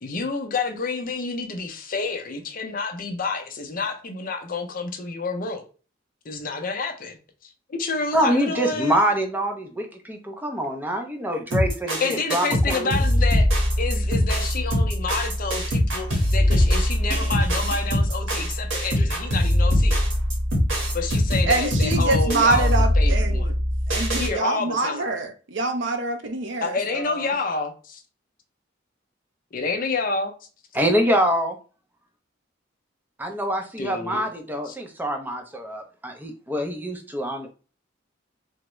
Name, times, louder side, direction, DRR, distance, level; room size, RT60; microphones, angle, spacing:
voice 1, 0.0-5.6 6.2-7.2 7.7-9.0 12.0-13.5 13.8-20.0 20.9-23.5 24.2-25.2 26.6-28.0 29.5-30.3 33.8-34.3 34.7-34.8, left 4 dB, 45° left, 0.5 m, -29 dB
voice 2, 8.1-13.0 30.7-31.6 33.2-37.5, equal, 10° right, 0.5 m, -25 dB
sound 1, 11.5-24.3, equal, 85° right, 1.2 m, -22 dB
voice 3, 21.5-23.5 23.9-27.3, right 3 dB, 65° right, 0.5 m, -25 dB
3.5 x 2.0 x 3.0 m
head